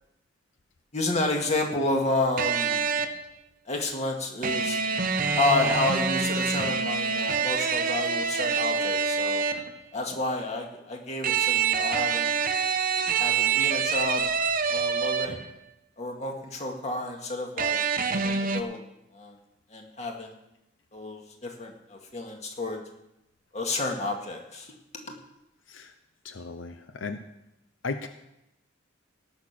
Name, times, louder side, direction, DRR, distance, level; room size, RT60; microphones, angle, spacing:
voice 1, 0.9-2.8 3.7-4.8 5.4-9.4 9.9-12.3 13.2-14.2 14.7-15.4 16.0-17.8 18.1-18.8 19.1-19.3 19.7-20.3 20.9-22.8 23.5-24.7, left 2 dB, 35° left, 2 dB, 2.0 m, -30 dB
sound 1, 2.4-3.3 4.4-9.8 11.2-15.6 17.6-18.6, right 6 dB, 45° right, 0.8 m, -26 dB
voice 2, 26.2-27.2 27.8-28.1, left 4 dB, 85° left, 8 dB, 0.8 m, -35 dB
18.0 x 6.7 x 6.0 m, 0.88 s
head